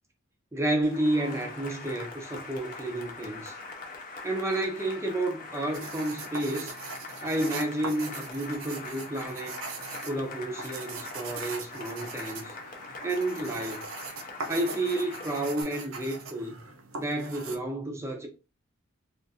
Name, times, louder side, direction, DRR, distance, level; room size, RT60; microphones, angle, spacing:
voice 1, 0.5-3.6 4.2-6.7 7.2-9.6 10.1-12.6 13.0-13.9 14.5-16.5 17.0-18.3, right 1 dB, 15° right, 0.5 m, -31 dB
Cheering / Applause, 0.8-15.6, left 3 dB, 40° left, 0.6 m, -42 dB
sound 1, 5.7-17.6, right 3 dB, 75° right, 0.6 m, -41 dB
3.4 x 2.5 x 2.7 m
head